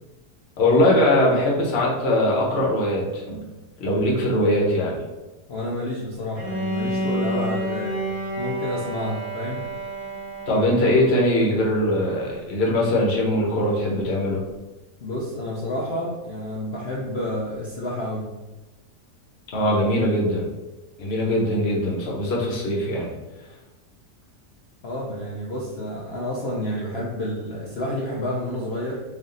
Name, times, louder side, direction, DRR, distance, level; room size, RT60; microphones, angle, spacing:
voice 1, 0.6-3.4 3.8-5.0 10.5-14.4 19.5-20.5 21.0-23.1, left 1 dB, 45° left, -3 dB, 1.0 m, -21 dB
voice 2, 5.5-8.0 8.4-9.7 15.0-18.3 24.8-29.0, left 1 dB, 65° left, -5 dB, 0.6 m, -29 dB
Bowed string instrument, 6.3-11.3, right 1 dB, 20° left, 0.8 m, -29 dB
3.4 x 2.5 x 3.8 m, 1.1 s
omnidirectional pair, 1.8 m